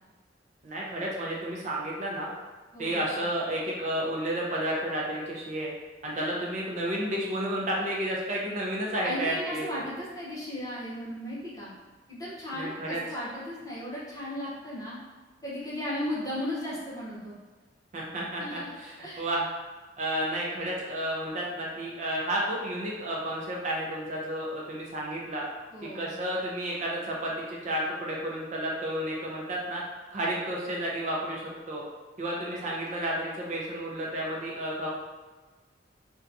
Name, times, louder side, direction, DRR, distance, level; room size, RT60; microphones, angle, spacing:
voice 1, 0.6-2.3 2.8-5.7 6.0-9.8 12.5-13.0 17.9-19.5 20.0-25.4 25.8-29.8 30.1-31.8 32.2-34.9, right 1 dB, 40° right, -3 dB, 0.4 m, -31 dB
voice 2, 2.7-3.2 9.0-11.7 12.1-15.0 15.4-17.4 18.4-18.7 19.0-19.3 25.7-26.2, left 1 dB, 20° left, -7 dB, 0.7 m, -36 dB
2.7 x 2.2 x 2.5 m, 1.3 s
head